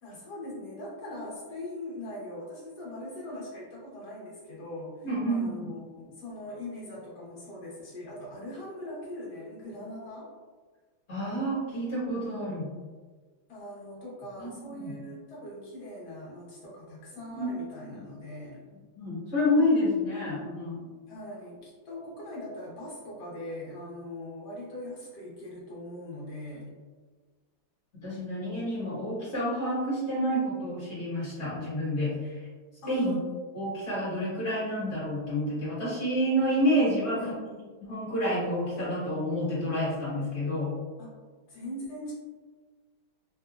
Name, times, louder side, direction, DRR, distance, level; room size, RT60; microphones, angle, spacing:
voice 1, 0.0-10.3 13.5-18.6 21.1-26.7 32.8-33.2 37.1-37.7 41.0-41.2 41.5-42.1, left 1 dB, 55° left, -6 dB, 1.5 m, -41 dB
voice 2, 5.0-5.7 11.1-12.7 14.4-14.9 17.3-17.5 17.9-18.0 18.9-20.8 28.0-32.4 32.9-33.1 33.5-37.3 37.8-40.7, equal, 35° left, -10 dB, 1.6 m, -29 dB
3.8 x 2.7 x 2.3 m, 1.4 s
omnidirectional pair, 2.4 m